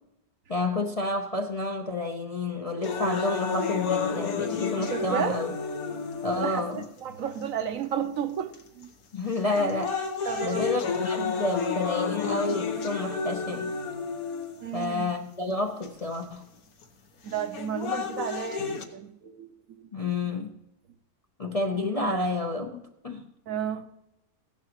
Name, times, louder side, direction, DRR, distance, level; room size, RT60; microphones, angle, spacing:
voice 1, 0.5-5.5 6.2-6.8 9.1-10.0 10.4-13.7 14.7-16.4 19.9-20.5 21.4-23.2, left 2 dB, 35° left, 0.6 m, -30 dB
sound 1, 2.8-6.9 7.6-7.7 8.5-8.8 9.3-14.8 15.8-15.9 17.3-18.8, left 5 dB, 75° left, 1.6 m, -31 dB
voice 2, 4.9-5.4 6.4-8.9 10.2-10.7 14.6-15.0 17.2-19.9 21.7-22.1 23.5-23.9, right 8 dB, 65° right, 1.1 m, -33 dB
16.0 x 11.5 x 3.0 m
omnidirectional pair, 1.6 m